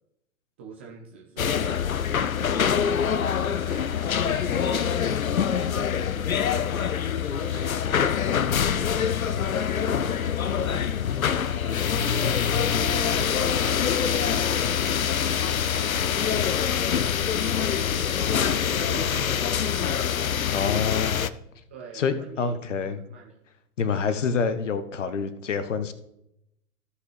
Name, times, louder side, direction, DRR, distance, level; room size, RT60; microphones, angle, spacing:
voice 1, 0.6-5.2 5.5-10.4 10.7-15.0 15.4-19.8 21.7-23.4 24.1-24.3, right 5 dB, 10° right, -1 dB, 0.3 m, -45 dB
sound 1, 1.4-21.3, left 8 dB, 80° left, 0.6 m, -25 dB
voice 2, 20.5-21.1 21.9-23.0 23.8-25.9, left 5 dB, 60° left, 13 dB, 1.0 m, -27 dB
15.0 x 5.7 x 3.3 m, 0.83 s
figure-of-eight pair, 110°, 41 cm